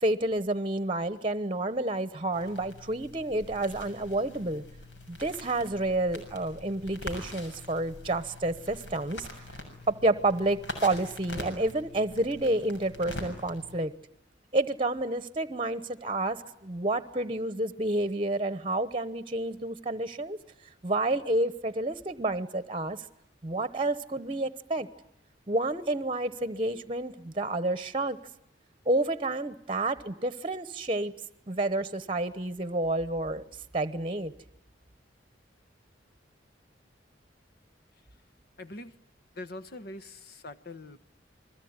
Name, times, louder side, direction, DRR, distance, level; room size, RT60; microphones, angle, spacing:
voice 1, 0.0-4.6 5.1-9.3 9.9-13.9 14.5-20.4 20.8-23.0 23.4-24.9 25.5-28.2 28.8-31.1 31.5-33.4 33.7-34.3, right 2 dB, 30° right, 13 dB, 1.0 m, -29 dB
sound 1, 2.3-13.8, left 1 dB, 80° left, 6.9 m, -44 dB
voice 2, 38.6-39.0 39.3-41.0, left 2 dB, 55° left, 13 dB, 1.3 m, -43 dB
29.0 x 21.5 x 9.6 m, 0.81 s
head